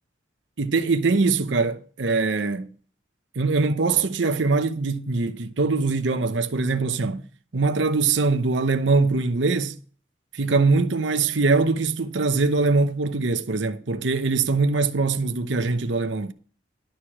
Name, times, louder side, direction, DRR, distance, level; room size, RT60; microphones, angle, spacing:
voice 1, 0.6-2.7 3.3-7.2 7.5-9.8 10.3-16.3, right 3 dB, 80° right, 0.8 m, -22 dB
11.5 x 4.9 x 7.2 m
head